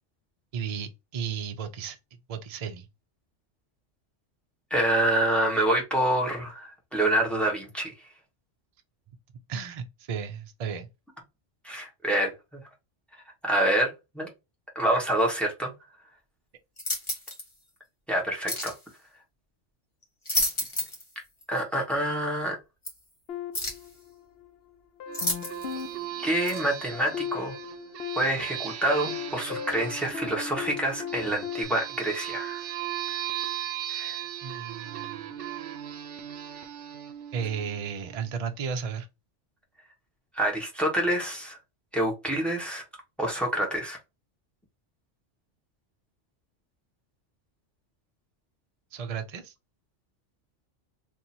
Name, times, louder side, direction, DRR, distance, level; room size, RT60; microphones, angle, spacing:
voice 1, 0.5-2.0 2.3-2.9 9.5-10.9 34.4-35.2 37.3-39.1 48.9-49.5, right 7 dB, 45° right, 0.5 m, -34 dB
voice 2, 4.7-7.9 11.6-12.3 13.4-14.3 14.7-15.7 18.1-18.7 21.5-22.6 26.2-27.5 28.2-32.6 33.9-34.2 40.3-41.6 41.9-42.8 43.2-44.0, right 1 dB, ahead, 1.0 m, -27 dB
sound 1, 16.8-17.5 18.5-18.8 20.0-21.1 21.4-21.5 22.8-22.9 23.5-23.9 25.1-25.8 26.5-26.6, left 1 dB, 25° left, 1.0 m, -30 dB
sound 2, 23.3-24.5 25.0-31.6, left 9 dB, 65° left, 0.7 m, -38 dB
sound 3, 25.1-38.3, right 12 dB, 75° right, 0.9 m, -37 dB
2.8 x 2.6 x 4.1 m
omnidirectional pair, 1.2 m